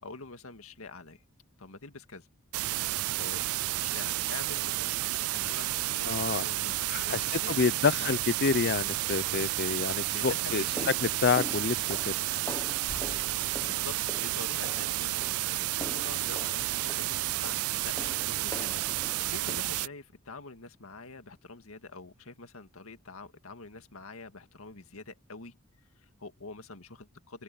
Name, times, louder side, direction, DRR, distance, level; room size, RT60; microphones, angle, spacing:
voice 1, 0.0-1.2 1.6-2.3 3.2-8.3 10.0-11.0 13.6-25.6 26.0-27.4, left 3 dB, 85° left, 2.0 m, -46 dB
sound 1, 2.5-19.9, right 17 dB, 90° right, 0.4 m, -31 dB
voice 2, 6.0-6.4 6.9-10.6 11.2-12.2, left 5 dB, 50° left, 0.6 m, -28 dB
sound 2, 10.3-19.6, left 1 dB, 15° left, 1.1 m, -44 dB
open air
head